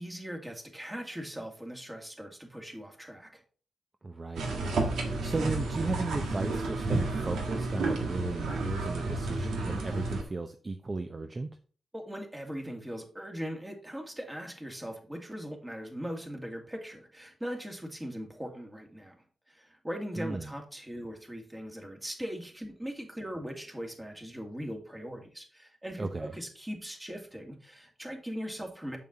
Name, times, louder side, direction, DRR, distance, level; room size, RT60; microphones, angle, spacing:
voice 1, 0.0-3.4 11.9-19.2 19.5-29.0, equal, 15° right, 3 dB, 2.1 m, -40 dB
voice 2, 4.0-11.5 20.2-20.5 26.0-26.3, right 3 dB, 35° right, 7 dB, 0.6 m, -35 dB
sound 1, 4.4-10.2, right 2 dB, 85° right, 1.4 m, -31 dB
7.0 x 6.0 x 3.9 m, 0.41 s
cardioid pair, 50°, 0 cm